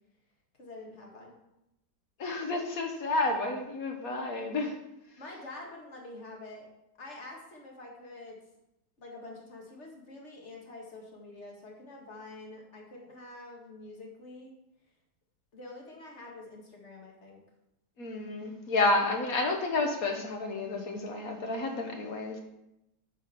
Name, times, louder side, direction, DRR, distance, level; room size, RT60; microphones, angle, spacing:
voice 1, 0.6-1.3 5.2-6.7 7.0-8.4 9.0-14.5 15.5-17.4, left 2 dB, 45° left, -1 dB, 1.8 m, -46 dB
voice 2, 2.2-4.7 18.0-22.4, left 2 dB, 60° left, 4 dB, 1.5 m, -30 dB
8.4 x 4.3 x 5.6 m, 0.88 s
omnidirectional pair, 1.8 m